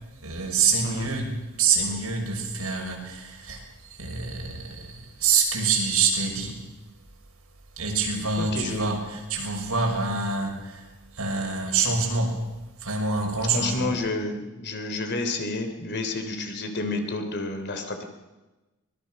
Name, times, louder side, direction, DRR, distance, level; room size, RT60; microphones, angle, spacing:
voice 1, 0.2-1.3 1.6-6.6 7.8-10.8 11.1-12.4 12.8-13.9, right 4 dB, 80° right, 0 dB, 6.3 m, -26 dB
voice 2, 8.4-8.9 13.4-18.0, left 2 dB, 50° left, 6 dB, 3.2 m, -30 dB
24.5 x 21.0 x 6.5 m, 1.1 s
head